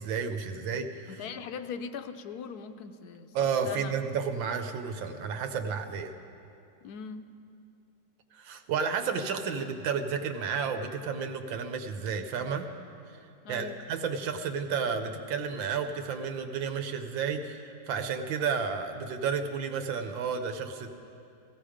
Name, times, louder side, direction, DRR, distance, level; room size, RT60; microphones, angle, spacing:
voice 1, 0.0-1.0 3.3-6.1 8.3-12.7 13.5-20.9, right 6 dB, 85° right, 7 dB, 1.6 m, -32 dB
voice 2, 1.1-3.9 6.8-7.3 13.4-13.8, left 6 dB, 65° left, 9 dB, 1.1 m, -40 dB
16.0 x 15.5 x 5.0 m, 2.6 s
omnidirectional pair, 2.0 m